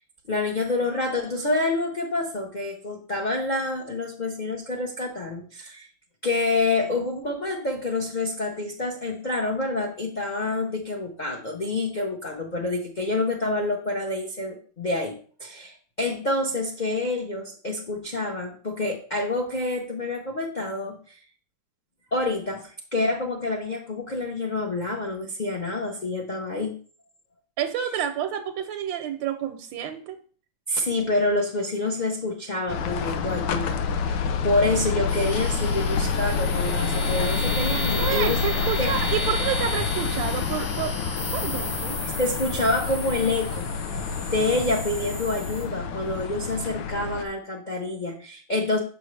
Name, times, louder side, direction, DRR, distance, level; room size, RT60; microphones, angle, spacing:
voice 1, 0.3-5.9 6.2-21.2 22.1-26.8 30.7-38.4 38.8-38.9 42.2-43.7 44.3-48.8, left 2 dB, 60° left, 0 dB, 0.4 m, -27 dB
voice 2, 27.6-30.2 38.0-40.9 41.3-41.9, right 9 dB, 85° right, 7 dB, 1.3 m, -29 dB
sound 1, 32.7-47.3, left 5 dB, 75° left, 1.3 m, -28 dB
sound 2, 35.1-45.6, equal, 90° left, 4.5 m, -35 dB
6.2 x 5.8 x 3.1 m, 0.43 s
omnidirectional pair, 2.0 m